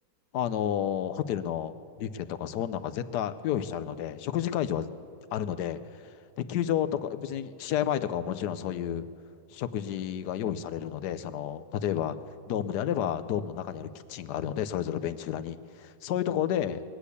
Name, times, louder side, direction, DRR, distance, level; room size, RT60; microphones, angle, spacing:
voice 1, 0.3-1.7 2.0-4.9 5.3-5.8 6.5-9.1 9.5-12.2 12.5-16.8, left 10 dB, 85° left, 11 dB, 1.3 m, -31 dB
21.0 x 8.3 x 8.4 m, 2.3 s
omnidirectional pair, 1.7 m